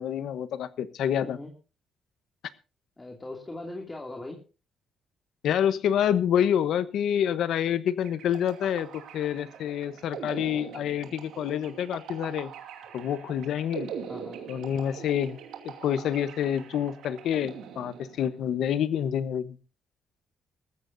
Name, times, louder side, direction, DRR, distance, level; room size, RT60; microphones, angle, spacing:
voice 1, 0.0-1.4 5.4-8.9 9.1-12.5 12.9-13.9 14.5-15.4 15.6-19.6, left 9 dB, 75° left, 14 dB, 1.0 m, -27 dB
voice 2, 3.0-4.4 14.1-14.5, left 2 dB, 20° left, 2 dB, 2.6 m, -40 dB
sound 1, 8.0-18.5, right 7 dB, 85° right, 2.5 m, -42 dB
20.0 x 14.5 x 2.7 m, 0.34 s
cardioid pair, 90°, 0 cm